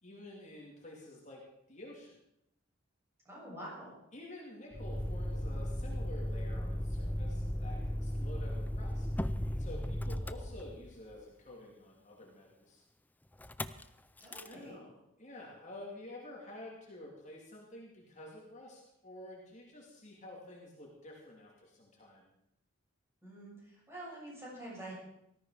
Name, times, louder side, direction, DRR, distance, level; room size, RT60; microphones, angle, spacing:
voice 1, 0.0-1.4 1.7-2.2 4.1-9.1 9.6-12.8 14.5-22.3, left 1 dB, 35° left, -2 dB, 2.7 m, -50 dB
voice 2, 3.2-4.0 9.9-10.1 14.2-14.8 23.2-24.9, right 1 dB, 15° right, -5 dB, 7.4 m, -47 dB
Motor vehicle (road), 4.7-11.1 13.4-13.8 14.2-14.5, equal, 10° left, 0.5 m, -36 dB
18.5 x 13.5 x 4.9 m, 0.80 s
head